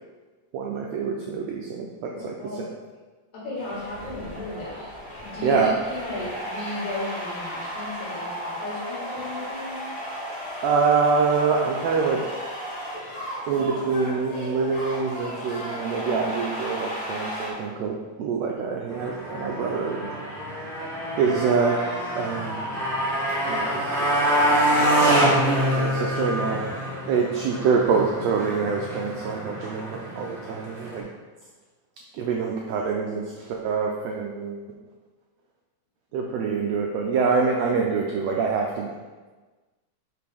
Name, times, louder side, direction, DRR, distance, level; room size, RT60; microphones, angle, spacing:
voice 1, 0.5-2.7 5.4-5.8 10.6-12.2 13.5-20.1 21.2-22.7 23.5-24.6 25.3-26.6 27.1-31.1 32.1-34.6 36.1-38.9, right 5 dB, 80° right, 0 dB, 1.5 m, -25 dB
voice 2, 2.1-2.6 3.3-4.9 5.2-9.8, left 2 dB, 70° left, -7 dB, 3.3 m, -35 dB
sound 1, 3.5-17.5, equal, 30° left, 1.0 m, -35 dB
Motorcycle, 18.9-31.0, right 1 dB, 60° right, 0.6 m, -26 dB
5.9 x 4.9 x 3.5 m, 1.3 s
omnidirectional pair, 3.5 m